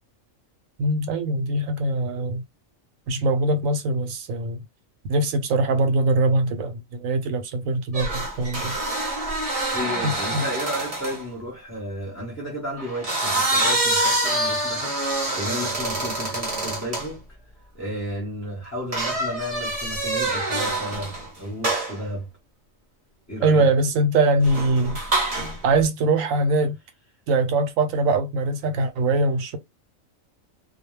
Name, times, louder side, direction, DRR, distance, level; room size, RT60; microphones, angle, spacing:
voice 1, 0.8-2.4 3.1-4.6 5.1-8.7 10.0-10.5 23.4-25.0 25.6-26.8 27.3-29.6, right 2 dB, 85° right, 1.1 m, -22 dB
sound 1, 7.9-11.2 12.8-17.1 18.9-21.3 21.6-22.0 24.4-25.6, right 2 dB, 35° right, 0.7 m, -26 dB
voice 2, 9.7-17.3 17.7-22.3 23.3-23.7, equal, 15° left, 0.8 m, -33 dB
2.3 x 2.2 x 3.1 m
omnidirectional pair, 1.4 m